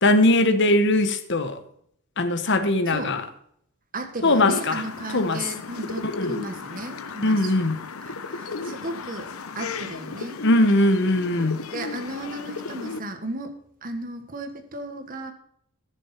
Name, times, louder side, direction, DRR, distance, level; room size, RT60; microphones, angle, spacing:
voice 1, 0.0-1.6 2.2-3.2 4.2-4.8 5.1-5.4 6.2-6.3 7.2-7.8 10.4-11.6, left 1 dB, 55° left, 1.1 m, -20 dB
voice 2, 3.9-7.5 8.0-9.3 9.5-10.4 11.7-13.5 13.8-15.3, right 2 dB, 40° right, 1.5 m, -35 dB
sound 1, 4.3-13.0, left 4 dB, 80° left, 0.9 m, -35 dB
14.5 x 6.7 x 4.4 m
head